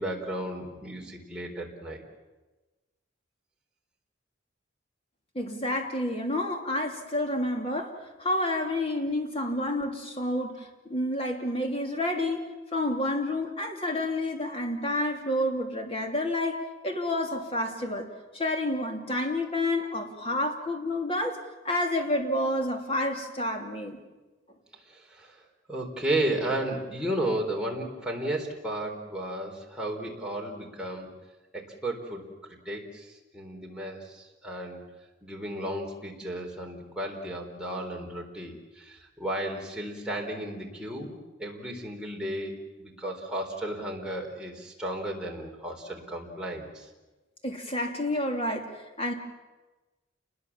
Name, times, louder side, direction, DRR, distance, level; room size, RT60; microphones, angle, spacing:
voice 1, 0.0-2.0 24.9-25.4 25.7-31.1 31.5-34.8 35.2-46.9, right 1 dB, 5° right, -2 dB, 3.9 m, -34 dB
voice 2, 5.3-12.4 12.7-18.1 18.3-21.4 21.6-24.0 47.4-48.7 49.0-49.1, left 1 dB, 30° left, 3 dB, 3.0 m, -29 dB
29.0 x 21.0 x 7.4 m, 1.2 s
head